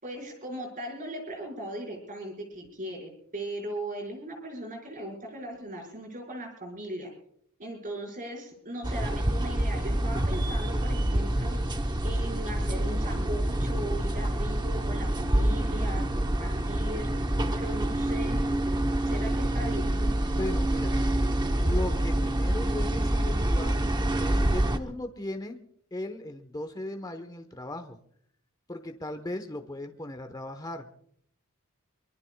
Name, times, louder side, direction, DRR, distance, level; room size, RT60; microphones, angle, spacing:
voice 1, 0.0-7.1 7.6-11.6 12.0-17.1 17.5-18.4 19.1-20.1, right 1 dB, 40° right, 2 dB, 5.2 m, -38 dB
sound 1, 8.8-24.8, right 1 dB, 20° right, 0.9 m, -27 dB
voice 2, 20.4-21.0 21.5-23.8 24.2-25.6 25.9-28.0 28.7-30.9, left 1 dB, 15° left, 6 dB, 1.0 m, -37 dB
24.0 x 23.5 x 2.3 m, 0.66 s
head